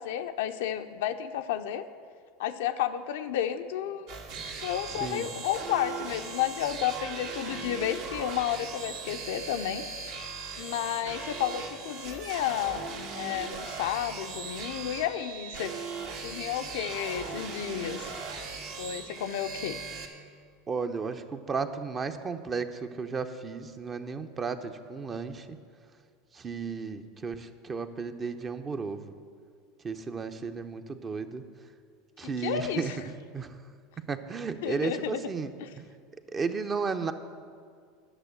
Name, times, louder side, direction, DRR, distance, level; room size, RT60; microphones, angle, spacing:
voice 1, 0.0-1.8 2.4-4.1 4.6-9.9 10.6-12.8 13.1-15.7 16.2-18.1 18.8-19.8 32.2-32.9 34.6-35.2 35.6-35.7, left 10 dB, 65° left, 8 dB, 0.5 m, -32 dB
sound 1, 4.1-20.0, right 4 dB, 65° right, 1.7 m, -39 dB
voice 2, 4.9-5.3 20.7-25.6 26.3-29.1 29.8-31.5 32.2-33.6 34.1-35.8 36.3-37.1, right 5 dB, 30° right, 8 dB, 0.7 m, -34 dB
11.5 x 6.8 x 8.0 m, 2.1 s
hypercardioid pair, 80°, 0 cm